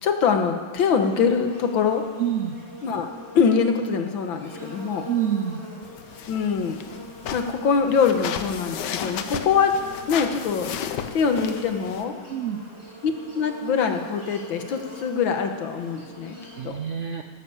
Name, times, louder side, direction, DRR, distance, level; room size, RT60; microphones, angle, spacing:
voice 1, 0.0-2.0 2.8-3.1 3.4-5.0 6.3-6.8 7.3-9.7 10.1-10.7 11.1-12.1 13.0-16.4 16.6-16.8, left 6 dB, 85° left, 5 dB, 2.0 m, -23 dB
Buzz, 0.9-16.6, left 1 dB, 15° left, 3.1 m, -43 dB
voice 2, 2.2-2.6 5.0-5.6 12.3-12.6 16.5-17.2, right 9 dB, 70° right, 6 dB, 0.7 m, -27 dB
sound 1, 5.8-12.0, left 8 dB, 65° left, 1.4 m, -34 dB
14.5 x 11.5 x 7.1 m, 1.5 s
omnidirectional pair, 2.1 m